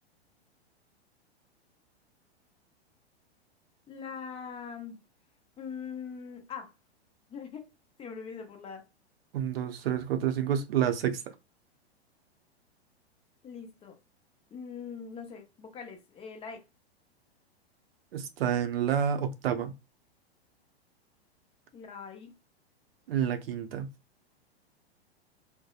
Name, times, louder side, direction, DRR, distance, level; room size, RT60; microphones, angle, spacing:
voice 1, 3.9-5.0 5.6-6.7 7.3-7.6 8.0-8.8 13.4-13.9 14.5-16.6 21.7-22.3, left 6 dB, 20° left, 0.7 m, -42 dB
voice 2, 9.3-11.3 18.1-19.7 23.1-23.9, right 9 dB, 60° right, 0.7 m, -29 dB
2.7 x 2.1 x 2.4 m
hypercardioid pair, 105°, 33 cm